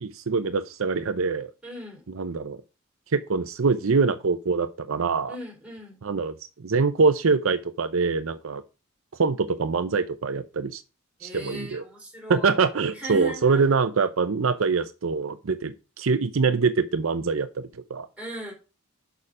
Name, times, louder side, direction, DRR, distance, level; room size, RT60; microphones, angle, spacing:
voice 1, 0.0-1.5 2.2-2.6 3.1-5.3 6.0-6.3 6.6-8.6 9.2-10.8 11.2-11.8 12.3-18.1, right 4 dB, 75° right, 0.6 m, -24 dB
voice 2, 1.6-2.0 5.3-6.0 11.2-13.8 18.2-18.5, equal, 5° right, 3.7 m, -38 dB
6.7 x 5.7 x 4.8 m
head